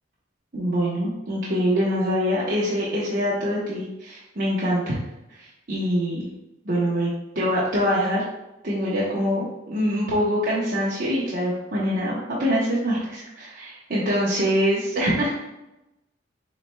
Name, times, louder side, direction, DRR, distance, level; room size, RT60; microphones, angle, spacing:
voice 1, 0.5-5.0 5.3-6.3 6.7-8.2 8.6-15.5, equal, 50° right, -7 dB, 1.0 m, -24 dB
7.4 x 3.2 x 2.2 m, 0.95 s
head